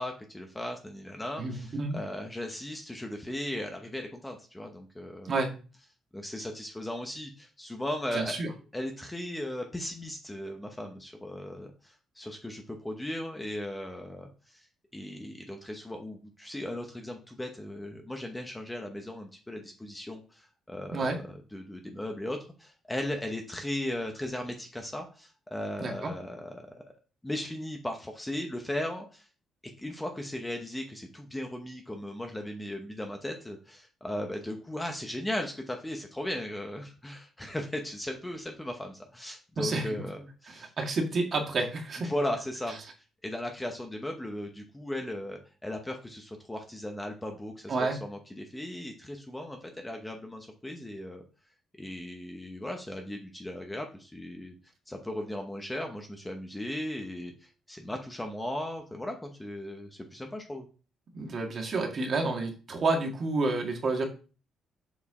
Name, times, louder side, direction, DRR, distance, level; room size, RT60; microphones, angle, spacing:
voice 1, 0.0-5.3 6.1-8.4 8.7-14.7 14.9-26.8 27.2-29.3 29.8-40.7 42.0-42.8 43.2-47.7 48.0-51.2 51.8-54.5 54.9-60.7, left 1 dB, 5° left, 3 dB, 0.8 m, -37 dB
voice 2, 1.4-2.0 5.2-5.5 8.1-8.5 20.9-21.2 25.8-26.1 39.6-40.1 40.5-42.1 47.7-48.0 61.1-64.1, right 3 dB, 35° right, 2 dB, 1.8 m, -30 dB
7.1 x 4.7 x 4.8 m, 0.35 s
cardioid pair, 170°, 0 cm